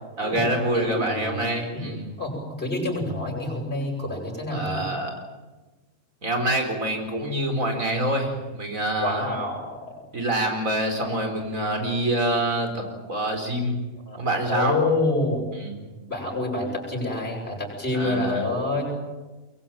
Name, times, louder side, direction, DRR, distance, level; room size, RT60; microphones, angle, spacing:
voice 1, 0.2-2.1 4.5-5.1 6.2-9.2 10.1-13.8 14.2-14.8 15.5-15.8 17.9-18.5, right 1 dB, 85° right, 4 dB, 4.9 m, -26 dB
voice 2, 0.7-1.4 1.7-1.9 2.2-4.9 9.0-10.0 14.1-14.2 14.5-15.4 16.1-18.9, left 2 dB, 45° left, -1 dB, 7.8 m, -27 dB
23.5 x 22.0 x 9.1 m, 1.2 s
omnidirectional pair, 1.4 m